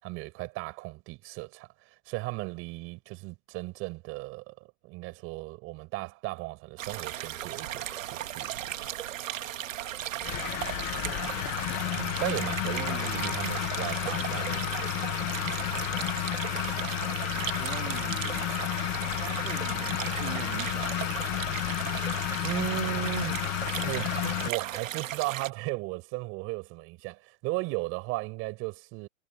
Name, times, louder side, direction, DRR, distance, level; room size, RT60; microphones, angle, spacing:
voice 1, 0.0-8.9 11.9-15.6 22.4-23.4 23.8-29.1, right 23 dB, 35° right, 5.9 m, -36 dB
sound 1, 6.8-25.5, right 12 dB, 85° right, 2.0 m, -36 dB
sound 2, 10.2-24.5, left 16 dB, 15° left, 0.3 m, -32 dB
voice 2, 10.9-11.4 12.6-13.5 17.3-18.5 19.1-20.9, right 14 dB, 65° right, 3.3 m, -43 dB
supercardioid pair, 155°, 38 cm